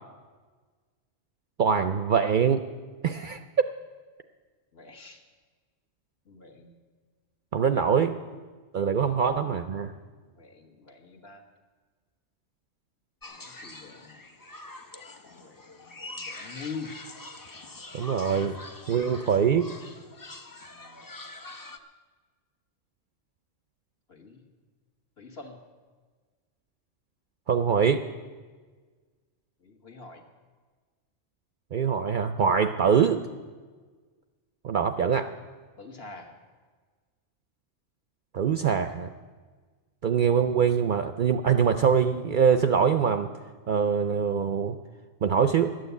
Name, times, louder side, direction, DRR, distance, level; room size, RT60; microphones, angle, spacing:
voice 1, 1.6-2.6 3.0-3.4 7.5-8.2 8.7-9.9 17.9-18.6 18.9-19.7 27.5-28.0 31.7-33.2 34.6-35.3 38.3-39.1 40.0-43.3 43.7-44.8 45.2-45.7, right 7 dB, 60° right, 9 dB, 0.6 m, -23 dB
voice 2, 4.7-5.2 6.2-6.7 7.7-8.1 8.8-9.3 10.3-11.5 13.3-14.2 15.3-16.9 20.7-21.1 24.1-24.4 25.2-25.6 29.6-30.2 35.8-36.3, left 4 dB, 60° left, 3 dB, 1.7 m, -45 dB
sound 1, 13.2-21.8, left 2 dB, 25° left, 0.5 m, -44 dB
12.5 x 9.2 x 8.2 m, 1.4 s
omnidirectional pair, 1.2 m